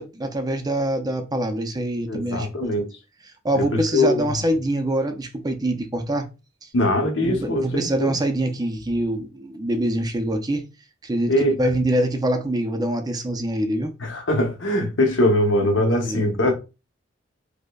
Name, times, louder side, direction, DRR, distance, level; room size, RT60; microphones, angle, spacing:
voice 1, 0.0-2.5 3.4-6.3 7.2-10.7 11.0-11.3 11.6-13.9 15.8-16.3, right 1 dB, 20° right, 0.5 m, -24 dB
voice 2, 2.1-3.0 3.5-4.4 6.7-8.2 11.3-11.6 14.0-16.5, left 1 dB, 85° left, 0.9 m, -22 dB
4.9 x 2.2 x 2.3 m
head